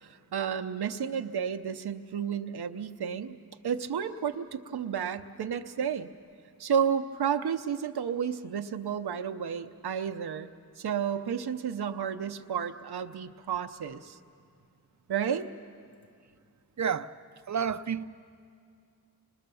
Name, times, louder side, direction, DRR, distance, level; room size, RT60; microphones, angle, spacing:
voice 1, 0.0-3.4 3.6-6.1 6.6-10.5 10.8-14.2 15.1-15.5, right 7 dB, 80° right, 0.8 m, -31 dB
voice 2, 16.8-17.1 17.5-18.0, right 7 dB, 50° right, 0.6 m, -30 dB
26.0 x 20.5 x 6.9 m
wide cardioid pair, 75°, 38 cm